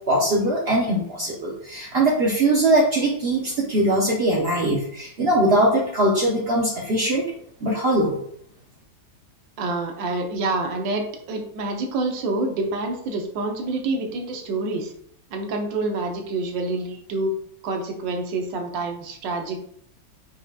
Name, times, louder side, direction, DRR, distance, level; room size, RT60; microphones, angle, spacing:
voice 1, 0.1-7.2 7.6-8.2, right 1 dB, 90° right, -3 dB, 0.5 m, -21 dB
voice 2, 9.6-14.9 15.3-17.3 17.6-19.7, right 2 dB, 70° right, 3 dB, 1.4 m, -27 dB
5.1 x 3.4 x 2.3 m, 0.65 s
omnidirectional pair, 2.1 m